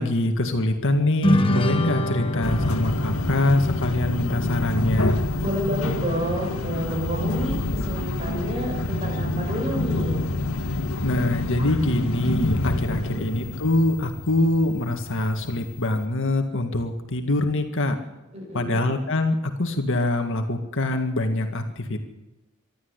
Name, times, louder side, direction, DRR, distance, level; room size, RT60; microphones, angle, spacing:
voice 1, 0.0-5.2 11.0-18.0 18.5-22.0, left 1 dB, 60° left, 5 dB, 1.9 m, -24 dB
sound 1, 1.2-4.8, left 1 dB, 25° left, 1.4 m, -26 dB
sound 2, 2.4-16.1, left 2 dB, 75° left, 1.6 m, -27 dB
voice 2, 5.4-10.3 12.7-13.3 18.3-18.9, right 1 dB, 30° right, 0 dB, 7.5 m, -30 dB
25.0 x 12.5 x 8.2 m, 1.0 s
head